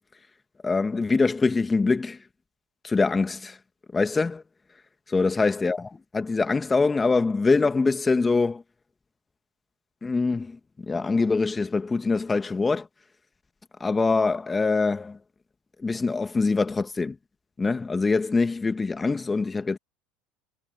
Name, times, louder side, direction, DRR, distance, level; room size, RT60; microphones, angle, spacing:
voice 1, 0.6-2.2 2.8-3.5 3.9-4.4 5.1-8.6 10.0-10.5 10.9-12.9 13.8-15.2 15.8-17.2 17.6-19.8, left 4 dB, 20° left, 1.8 m, -24 dB
hypercardioid pair, 75°, 0 cm